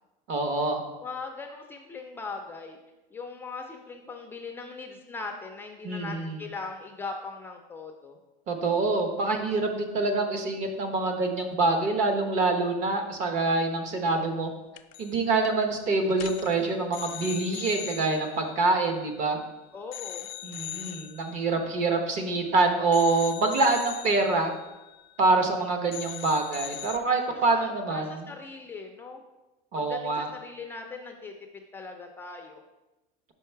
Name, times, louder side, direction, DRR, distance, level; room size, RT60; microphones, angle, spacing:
voice 1, 0.3-0.8 5.8-6.4 8.5-14.5 15.0-19.4 20.4-24.5 25.2-28.3 29.7-30.3, right 3 dB, 45° right, 5 dB, 0.9 m, -26 dB
voice 2, 1.0-2.8 3.1-8.2 19.7-20.3 27.4-29.2 29.7-32.6, left 4 dB, 10° left, 2 dB, 0.3 m, -40 dB
sound 1, 14.8-15.2 15.4-15.7 16.1-19.5 19.9-22.5 22.9-25.6 25.9-27.0, left 15 dB, 80° left, 0.4 m, -41 dB
5.4 x 4.6 x 4.5 m, 1.1 s
cardioid pair, 165°, 18 cm